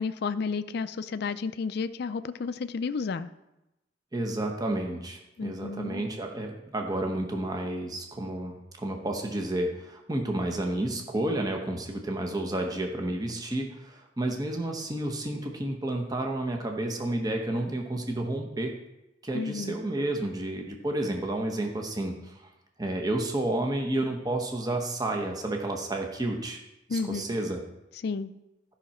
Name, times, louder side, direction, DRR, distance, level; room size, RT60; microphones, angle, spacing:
voice 1, 0.0-3.3 5.4-6.0 19.3-19.8 26.9-27.3 28.0-28.3, left 4 dB, 60° left, 13 dB, 0.4 m, -32 dB
voice 2, 4.1-18.7 19.2-22.5 22.8-26.6 26.9-27.6, right 1 dB, 20° right, 2 dB, 0.9 m, -31 dB
13.0 x 5.7 x 4.3 m, 0.93 s
head